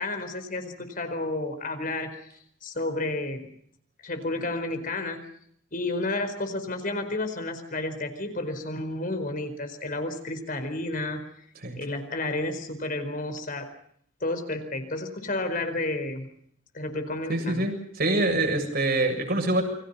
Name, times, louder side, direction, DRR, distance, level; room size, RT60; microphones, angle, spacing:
voice 1, 0.0-2.2 2.6-3.5 4.0-5.2 5.7-11.2 11.8-13.7 14.2-16.3 16.7-17.7, left 2 dB, 45° left, 7 dB, 4.7 m, -31 dB
voice 2, 17.3-19.6, right 2 dB, 50° right, 4 dB, 7.3 m, -25 dB
29.5 x 24.0 x 5.7 m, 0.67 s
head